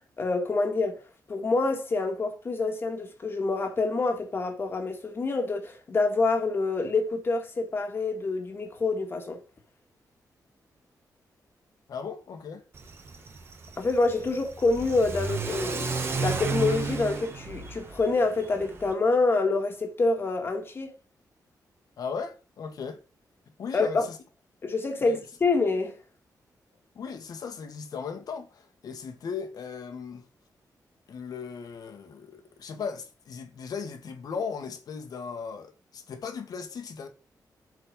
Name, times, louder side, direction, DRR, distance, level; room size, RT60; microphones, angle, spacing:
voice 1, 0.2-1.0 1.3-9.4 13.8-15.9 16.2-20.9 23.7-24.0 24.6-26.0, left 3 dB, 35° left, 1.7 m, -26 dB
voice 2, 11.9-12.6 22.0-23.0 23.6-24.2 25.0-25.2 26.9-30.2 31.1-37.1, left 6 dB, 65° left, 1.7 m, -37 dB
Car / Accelerating revving vroom, 12.7-18.9, right 4 dB, 35° right, 1.3 m, -33 dB
8.0 x 4.4 x 5.1 m
wide cardioid pair, 175°, 7 cm